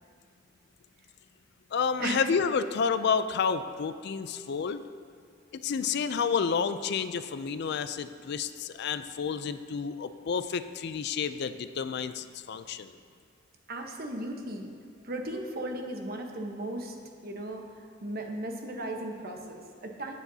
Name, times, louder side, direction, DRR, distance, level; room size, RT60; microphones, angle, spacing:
voice 1, 1.7-4.8 5.5-12.9, left 6 dB, 60° left, 11 dB, 0.4 m, -30 dB
voice 2, 13.7-14.7 15.0-16.9 17.2-17.6 18.0-20.1, right 1 dB, 50° right, 3 dB, 1.1 m, -36 dB
16.5 x 8.2 x 2.8 m, 2.2 s
head